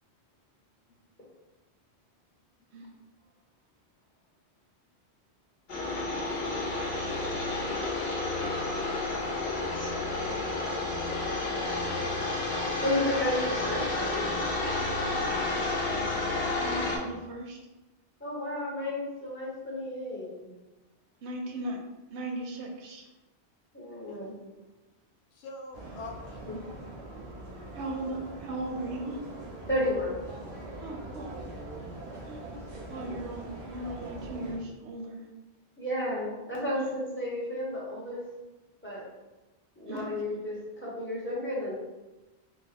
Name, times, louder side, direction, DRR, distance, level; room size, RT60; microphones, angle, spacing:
sound 1, 5.7-17.0, left 2 dB, 50° left, 0.9 m, -30 dB
voice 1, 12.8-14.2 18.2-20.3 23.7-24.3 26.4-26.6 29.7-30.2 32.0-32.2 35.8-38.2 38.8-39.0 39.8-41.7, left 1 dB, 10° left, -6 dB, 1.0 m, -32 dB
voice 2, 16.5-17.6 21.2-21.8 22.1-23.1 25.8-25.9 27.7-29.2 30.8-31.4 32.2-32.4 32.9-35.3 36.7-37.0 39.9-40.1, right 1 dB, 90° right, 2 dB, 1.0 m, -37 dB
voice 3, 24.1-24.5 25.3-26.4 26.7-26.8 39.9-40.2, left 2 dB, 80° left, 2 dB, 0.9 m, -45 dB
sound 2, 25.7-34.6, right 2 dB, 45° right, 0.9 m, -42 dB
3.8 x 2.3 x 4.2 m, 1.1 s
omnidirectional pair, 1.1 m